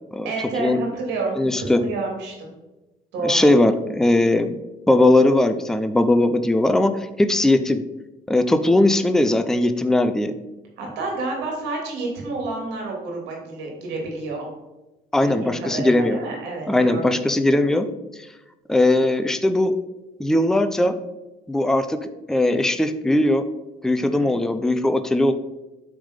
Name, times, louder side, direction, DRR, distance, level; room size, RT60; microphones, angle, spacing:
voice 1, 0.2-2.5 3.1-3.5 10.8-14.5 15.2-17.2 24.0-24.3, right 3 dB, 90° right, 0 dB, 2.5 m, -29 dB
voice 2, 1.4-1.8 3.2-4.6 4.9-7.8 8.3-10.3 15.1-16.2 16.7-17.9 18.7-19.8 20.2-21.0 21.5-23.4 23.8-25.3, left 1 dB, 5° left, 8 dB, 0.5 m, -19 dB
8.8 x 3.6 x 5.1 m, 1.0 s
cardioid pair, 110°, 17 cm